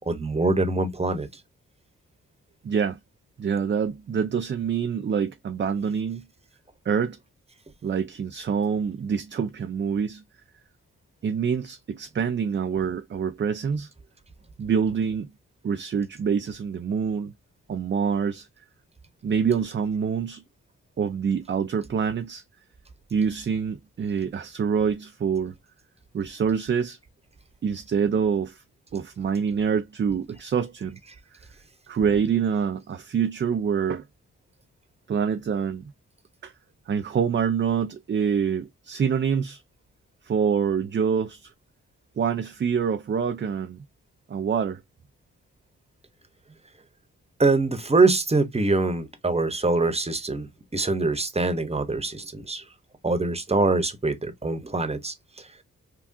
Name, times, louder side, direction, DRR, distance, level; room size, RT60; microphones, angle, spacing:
voice 1, 0.1-1.3 47.4-52.6 53.0-55.1, right 3 dB, 20° right, 1.0 m, -24 dB
voice 2, 2.6-3.0 3.4-6.2 6.9-7.2 7.8-10.2 11.2-13.9 14.6-15.3 15.6-17.3 17.7-18.5 19.2-20.4 21.0-22.4 23.1-25.5 26.1-27.0 27.6-28.6 28.9-31.0 31.9-34.0 35.1-35.9 36.4-36.5 36.9-39.6 40.2-41.5 42.2-43.8 44.3-44.8, right 7 dB, 35° right, 0.5 m, -26 dB
3.5 x 2.3 x 2.6 m
supercardioid pair, 45°, 32 cm